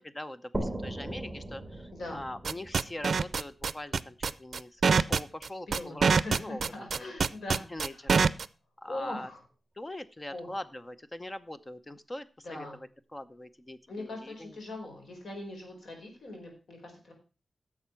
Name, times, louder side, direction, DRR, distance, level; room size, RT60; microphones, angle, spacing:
voice 1, 0.0-7.1 7.7-8.2 8.8-9.3 9.8-14.6, left 1 dB, 25° left, 13 dB, 0.7 m, -42 dB
sound 1, 0.5-4.1, right 1 dB, 5° right, 3.0 m, -39 dB
sound 2, 2.4-8.5, right 5 dB, 70° right, 0.5 m, -24 dB
voice 2, 5.7-8.0 8.9-9.4 10.3-10.6 12.4-12.8 13.9-17.1, left 2 dB, 75° left, 2 dB, 5.0 m, -41 dB
11.5 x 7.2 x 5.9 m, 0.33 s
wide cardioid pair, 115°, 0 cm